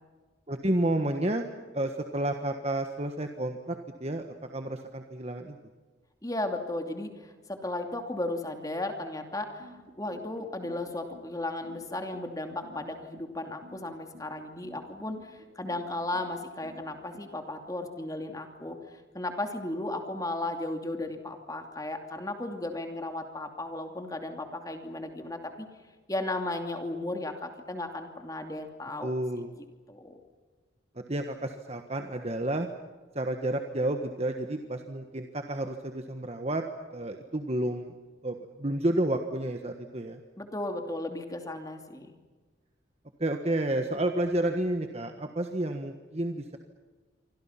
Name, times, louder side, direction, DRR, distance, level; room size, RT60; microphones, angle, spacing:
voice 1, 0.5-1.4 1.7-5.6 29.0-29.5 31.0-32.7 33.1-36.6 36.9-37.9 38.2-40.2 43.2-46.6, right 1 dB, 35° right, 5 dB, 1.5 m, -30 dB
voice 2, 6.2-25.7 26.1-29.1 29.9-30.2 40.4-42.1, left 2 dB, 20° left, 5 dB, 2.7 m, -35 dB
sound 1, 9.6-17.2, right 1 dB, 50° right, 3.9 m, -52 dB
28.5 x 25.5 x 5.9 m, 1.4 s
head